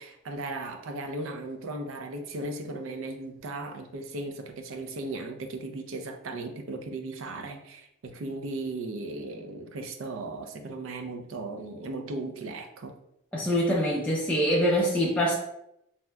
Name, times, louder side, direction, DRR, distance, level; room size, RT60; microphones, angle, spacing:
voice 1, 0.0-13.0, right 2 dB, 75° right, 6 dB, 0.4 m, -36 dB
voice 2, 13.3-15.3, equal, 5° left, -5 dB, 0.4 m, -24 dB
3.2 x 2.7 x 2.2 m, 0.81 s
head